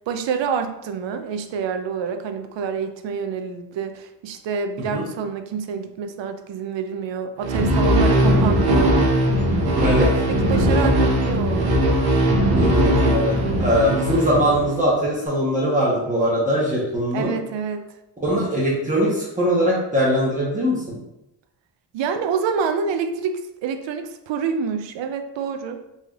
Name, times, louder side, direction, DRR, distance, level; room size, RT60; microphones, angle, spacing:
voice 1, 0.1-8.9 10.0-11.8 17.1-17.9 21.9-25.8, right 6 dB, 80° right, 7 dB, 0.5 m, -27 dB
sound 1, 7.4-14.9, equal, 55° right, 0.8 m, -19 dB
voice 2, 12.5-17.3 18.2-21.0, equal, 20° right, -7 dB, 0.9 m, -21 dB
4.0 x 3.3 x 2.3 m, 0.89 s
wide cardioid pair, 150°, 44 cm